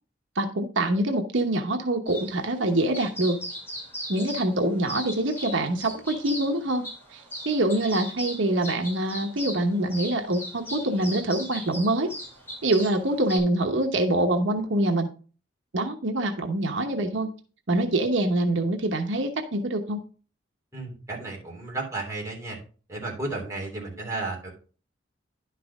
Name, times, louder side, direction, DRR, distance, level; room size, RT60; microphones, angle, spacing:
voice 1, 0.3-3.4 4.1-6.9 7.1-12.1 12.6-15.1 15.7-17.3 17.7-20.0, right 1 dB, 85° right, 4 dB, 1.0 m, -25 dB
sound 1, 2.1-13.4, equal, 10° left, 3.9 m, -39 dB
voice 2, 20.7-22.6 22.9-24.5, right 2 dB, 15° right, -3 dB, 3.3 m, -33 dB
11.0 x 5.9 x 3.5 m, 0.37 s
head